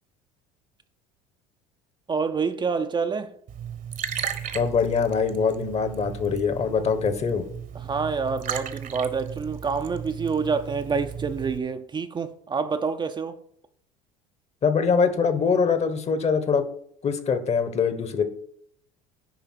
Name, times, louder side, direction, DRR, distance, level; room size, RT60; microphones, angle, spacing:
voice 1, 2.1-3.3 7.7-13.4, right 5 dB, 25° right, 0.6 m, -27 dB
Liquid, 3.5-11.6, right 9 dB, 45° right, 1.1 m, -35 dB
voice 2, 4.5-7.4 14.6-16.6 17.0-18.2, left 5 dB, 35° left, 1.2 m, -23 dB
10.0 x 3.4 x 6.3 m
hypercardioid pair, 80°, 18 cm